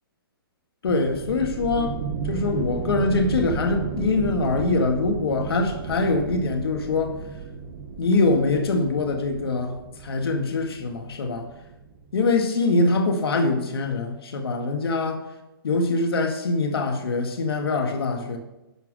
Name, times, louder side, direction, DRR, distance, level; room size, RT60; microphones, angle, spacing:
voice 1, 0.8-2.0 2.2-7.2 8.0-11.5 12.1-15.2 15.6-18.4, left 3 dB, 80° left, 1.8 m, -23 dB
sound 1, 0.8-12.3, right 6 dB, 30° right, 1.1 m, -34 dB
12.0 x 5.8 x 6.3 m
hypercardioid pair, 160°, 12 cm